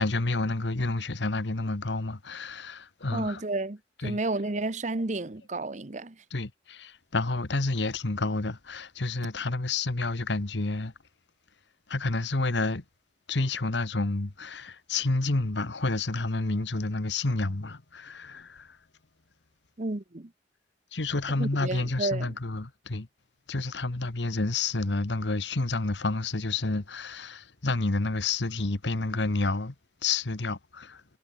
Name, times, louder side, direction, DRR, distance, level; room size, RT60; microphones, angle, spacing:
voice 1, 0.0-3.4 4.0-4.2 6.3-10.9 11.9-12.8 13.3-18.8 20.9-23.1 23.5-29.7 30.0-31.0, left 3 dB, 80° left, 1.4 m, -29 dB
voice 2, 3.1-6.2 19.8-20.3 21.3-22.4, right 2 dB, 40° right, 1.0 m, -31 dB
head